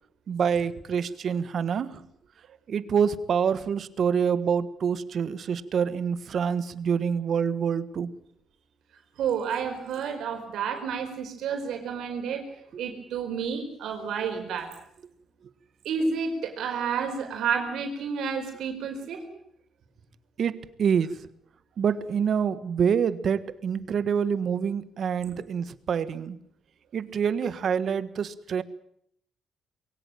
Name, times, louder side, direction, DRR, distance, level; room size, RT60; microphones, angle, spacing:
voice 1, 0.3-2.0 2.7-8.1 12.7-12.8 20.4-21.1 21.8-26.4 26.9-28.6, right 7 dB, 55° right, 15 dB, 1.5 m, -26 dB
voice 2, 9.2-12.4 12.8-14.7 15.8-19.2 25.2-25.4, right 6 dB, 75° right, 5 dB, 4.8 m, -30 dB
22.0 x 17.5 x 9.1 m, 0.71 s
cardioid pair, 90°, 0 cm